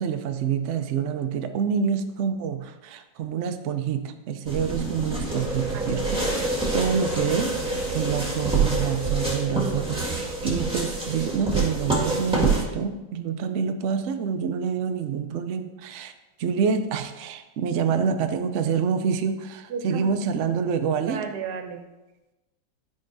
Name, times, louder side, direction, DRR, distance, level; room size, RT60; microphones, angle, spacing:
voice 1, 0.0-16.1 16.4-21.2, right 6 dB, 90° right, 7 dB, 0.6 m, -27 dB
sound 1, 4.5-12.6, right 3 dB, 5° right, 1.5 m, -26 dB
voice 2, 5.7-6.3 19.7-20.2 21.1-21.8, right 5 dB, 70° right, 6 dB, 1.3 m, -34 dB
12.5 x 5.2 x 2.6 m, 1.0 s
omnidirectional pair, 1.9 m